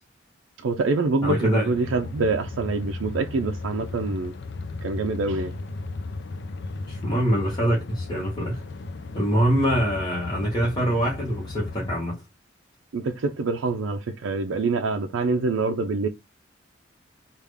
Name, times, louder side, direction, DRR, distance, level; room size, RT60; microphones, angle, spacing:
voice 1, 0.6-4.3 4.8-5.5 12.9-16.1, right 3 dB, 85° right, 0.4 m, -25 dB
voice 2, 1.2-1.7 6.9-8.6 9.1-12.1, equal, 25° left, 1.2 m, -24 dB
sound 1, 1.7-12.0, left 3 dB, 60° left, 0.4 m, -35 dB
3.5 x 2.4 x 3.4 m
head